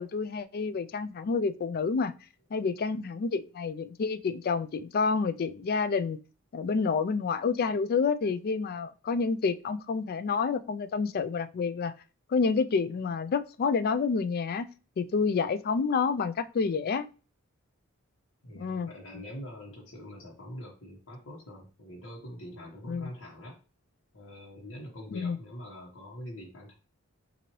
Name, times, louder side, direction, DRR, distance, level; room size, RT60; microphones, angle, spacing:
voice 1, 0.0-2.1 2.5-6.2 6.5-11.9 12.3-14.7 15.0-17.1 18.5-18.9 22.9-23.1 25.1-25.4, left 5 dB, 45° left, 0.4 m, -29 dB
voice 2, 18.4-23.6 24.1-26.7, equal, 60° left, 1.2 m, -44 dB
5.8 x 2.7 x 3.1 m
head